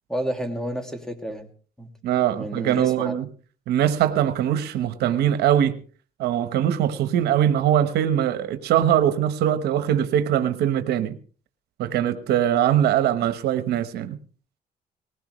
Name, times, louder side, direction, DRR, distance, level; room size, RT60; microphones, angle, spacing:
voice 1, 0.1-1.5 1.8-1.9 2.3-3.1, right 1 dB, 5° left, 6 dB, 2.4 m, -30 dB
voice 2, 2.0-3.3 3.7-5.8 6.2-11.2 11.8-14.2, right 10 dB, 85° right, 10 dB, 1.2 m, -22 dB
20.0 x 16.0 x 3.2 m, 0.40 s
cardioid pair, 100°, 16 cm